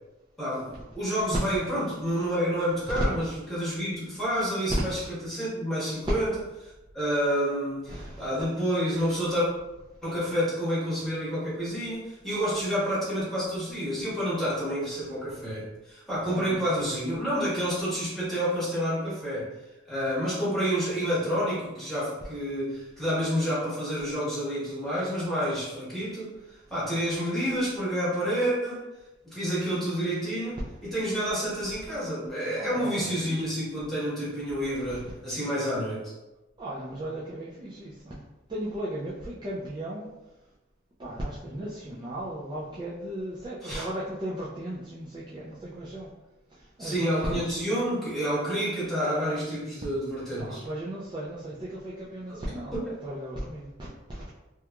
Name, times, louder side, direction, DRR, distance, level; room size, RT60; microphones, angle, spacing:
voice 1, 0.4-5.0 5.3-6.3 6.6-9.5 10.0-19.5 19.9-28.8 29.2-36.1 43.6-43.8 46.8-50.6 52.3-52.4 52.7-52.9, equal, ahead, -10 dB, 1.1 m, -29 dB
voice 2, 7.9-8.2 16.2-16.7 32.6-33.4 34.9-35.1 36.6-38.2 38.5-40.1 41.0-46.1 46.5-47.6 48.8-48.9 50.4-53.7 54.1-54.2, right 1 dB, 20° right, -8 dB, 0.3 m, -36 dB
2.9 x 2.3 x 2.2 m, 1.0 s
head